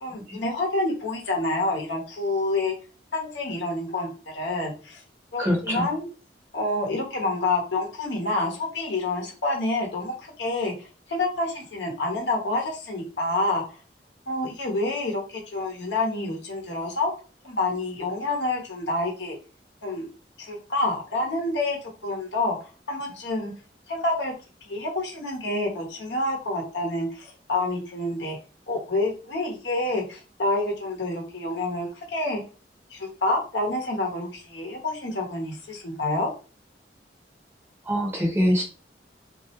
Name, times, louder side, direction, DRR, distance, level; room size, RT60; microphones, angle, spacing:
voice 1, 0.0-2.7 3.1-5.0 5.3-6.1 6.5-10.7 11.1-13.6 14.3-17.1 17.4-19.4 19.8-20.0 20.4-21.8 22.0-22.6 22.9-23.5 23.9-24.3 24.6-28.4 28.7-32.4 32.9-36.3, left 2 dB, 90° left, 0 dB, 0.8 m, -28 dB
voice 2, 5.4-5.9 37.8-38.6, equal, 15° right, -2 dB, 0.6 m, -24 dB
2.3 x 2.0 x 2.8 m, 0.35 s
head